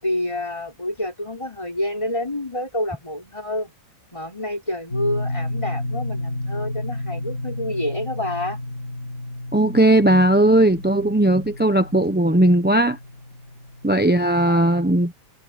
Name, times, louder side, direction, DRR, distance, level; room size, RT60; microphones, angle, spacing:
voice 1, 0.0-3.7 4.1-8.6 14.4-14.7, left 1 dB, 15° left, 5.0 m, -28 dB
sound 1, 4.9-14.5, left 1 dB, 50° left, 7.9 m, -32 dB
voice 2, 9.5-13.0 13.8-15.1, right 1 dB, 10° right, 0.6 m, -17 dB
omnidirectional pair, 1.8 m